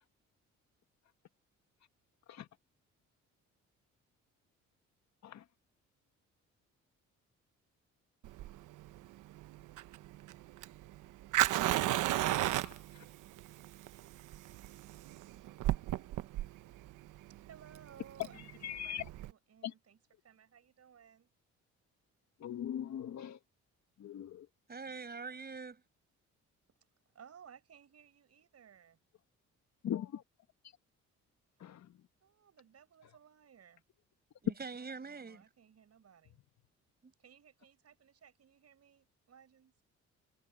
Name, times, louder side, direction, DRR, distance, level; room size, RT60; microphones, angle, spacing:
Fire, 8.2-19.3, right 15 dB, 85° right, 1.0 m, -35 dB
voice 1, 12.2-13.0 18.3-19.1 19.6-19.7 22.4-23.4 24.0-24.5 29.8-30.2 31.6-32.0, left 10 dB, 65° left, 1.6 m, -41 dB
voice 2, 17.3-20.0 20.2-21.3 26.7-26.8 27.1-29.0 31.6-31.8 32.2-33.8 34.6-36.4 37.2-39.8, right 8 dB, 55° right, 6.1 m, -60 dB
voice 3, 24.7-25.8 34.4-35.4 37.0-37.1, right 4 dB, 30° right, 6.5 m, -44 dB
cardioid pair, 90°, 30 cm